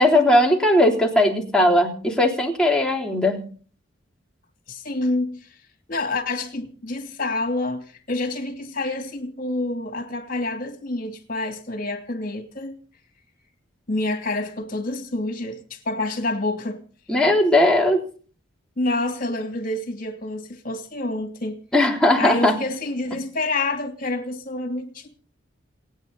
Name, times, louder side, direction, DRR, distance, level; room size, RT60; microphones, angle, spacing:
voice 1, 0.0-3.4 17.1-18.0 21.7-22.5, left 1 dB, 5° left, 3.4 m, -18 dB
voice 2, 4.7-5.5 5.9-12.8 13.9-16.8 18.8-21.6 22.2-25.1, left 2 dB, 45° left, 2.8 m, -28 dB
28.0 x 9.6 x 4.1 m
head